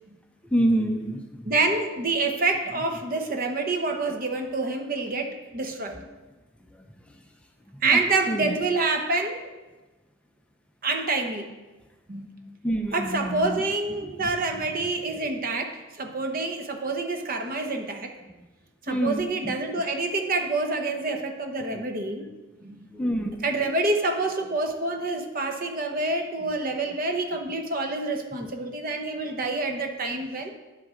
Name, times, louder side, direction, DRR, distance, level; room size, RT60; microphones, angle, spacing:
voice 1, 0.4-1.5 5.9-6.1 6.7-7.3 7.7-8.0 8.3-8.6 12.6-13.6 13.9-14.9 18.9-19.6 21.7-21.8 22.9-23.4 26.5-26.6 28.4-28.5, right 1 dB, 5° left, 3 dB, 0.5 m, -29 dB
voice 2, 1.5-6.0 7.8-9.5 10.8-11.5 12.1-12.6 12.9-18.1 18.9-22.2 22.6-22.9 23.4-30.5, right 3 dB, 45° right, 5 dB, 0.9 m, -27 dB
10.0 x 8.1 x 3.7 m, 1.1 s
head